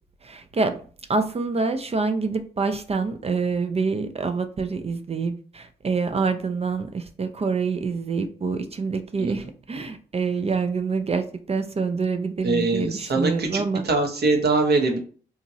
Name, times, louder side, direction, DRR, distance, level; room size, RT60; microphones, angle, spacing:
voice 1, 0.2-0.8 1.1-13.8, right 4 dB, 30° right, 8 dB, 0.4 m, -26 dB
voice 2, 12.4-15.0, right 3 dB, 60° right, 3 dB, 0.8 m, -22 dB
2.9 x 2.4 x 2.7 m, 0.42 s
supercardioid pair, 40°, 19 cm